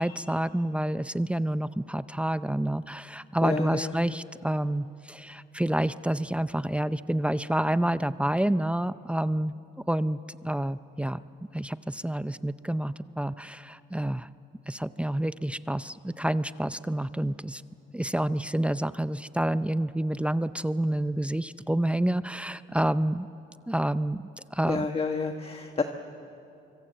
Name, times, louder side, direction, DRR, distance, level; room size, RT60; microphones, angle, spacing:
voice 1, 0.0-9.5 9.9-11.2 11.5-14.3 14.7-17.6 17.9-23.3 23.7-24.2 24.5-24.9, right 1 dB, 5° right, 14 dB, 0.6 m, -28 dB
voice 2, 3.4-4.2 24.6-25.8, left 4 dB, 30° left, 6 dB, 1.3 m, -30 dB
25.0 x 24.5 x 8.0 m, 2.6 s
cardioid pair, 90°, 20 cm